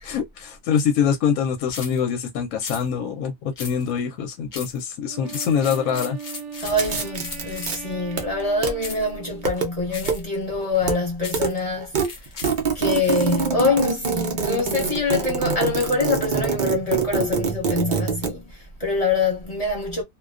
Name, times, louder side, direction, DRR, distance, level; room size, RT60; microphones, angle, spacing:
voice 1, 0.0-6.2, left 7 dB, 70° left, 0.9 m, -24 dB
sound 1, 1.7-2.0 2.6-2.8 3.6-4.0 4.5-4.8 5.2-7.9 8.8-9.1 9.9-10.3 11.2-11.6 12.0-13.4, left 4 dB, 55° left, 0.5 m, -37 dB
Wind instrument woodwind instrument, 5.0-9.8, right 6 dB, 60° right, 0.8 m, -38 dB
voice 2, 6.6-11.9 12.7-20.0, left 3 dB, 30° left, 0.8 m, -25 dB
sound 2, 6.6-7.8 8.1-8.7 9.3-9.7 10.0-10.2 10.5-11.0 11.2-11.5 11.8-18.3, right 5 dB, 80° right, 0.4 m, -25 dB
2.4 x 2.2 x 2.3 m
omnidirectional pair, 1.6 m